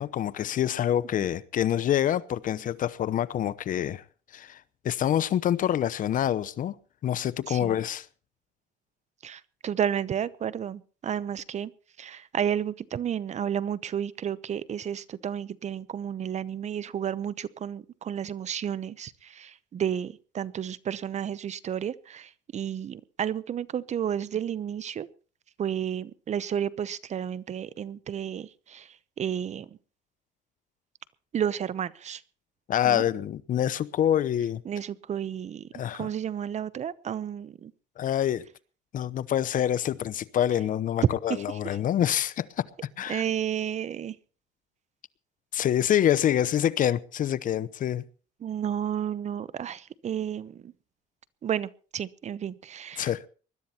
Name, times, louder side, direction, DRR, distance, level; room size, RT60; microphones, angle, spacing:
voice 1, 0.0-4.0 4.3-6.7 7.0-8.1 32.7-34.6 35.7-36.1 38.0-38.5 38.9-42.5 43.0-43.2 45.5-48.0 53.0-53.2, left 10 dB, 55° left, 0.8 m, -26 dB
voice 2, 7.5-7.8 9.2-11.7 12.0-25.1 25.6-29.7 31.3-32.2 32.8-33.0 34.6-35.7 35.9-37.7 41.3-41.6 43.1-44.2 48.4-50.7 51.4-53.3, right 9 dB, 40° right, 0.8 m, -32 dB
20.5 x 12.0 x 4.3 m
cardioid pair, 110°, 17 cm